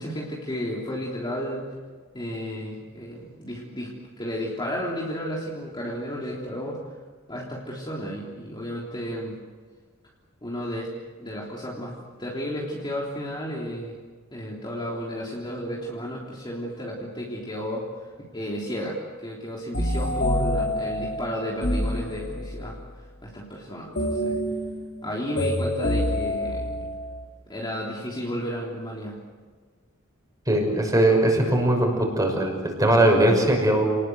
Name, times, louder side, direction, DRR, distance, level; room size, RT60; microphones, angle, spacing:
voice 1, 0.0-1.7 2.1-6.8 7.3-9.4 10.4-10.9 11.2-14.0 14.3-17.9 18.2-22.8 23.2-24.4 25.0-26.7 27.5-29.2, equal, 20° left, -4 dB, 3.5 m, -33 dB
sound 1, 19.7-22.7 24.0-27.2, left 1 dB, 50° left, 4.2 m, -27 dB
voice 2, 30.5-33.8, right 1 dB, 15° right, 2 dB, 6.0 m, -20 dB
29.5 x 20.0 x 8.0 m, 1.5 s
head